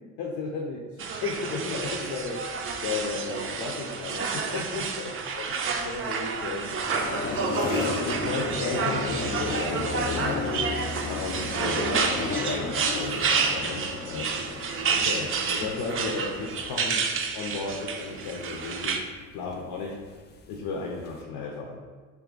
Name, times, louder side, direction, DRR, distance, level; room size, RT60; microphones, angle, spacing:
voice 1, 0.0-5.5 5.8-6.8 7.5-17.1 17.3-19.0 19.3-20.0 20.5-21.8, left 4 dB, 75° left, -1 dB, 0.6 m, -34 dB
sound 1, 1.0-19.0, right 5 dB, 40° right, 0.4 m, -30 dB
sound 2, 6.3-21.2, left 4 dB, 30° left, 0.4 m, -34 dB
3.5 x 2.6 x 3.8 m, 1.4 s
cardioid pair, 100°, 34 cm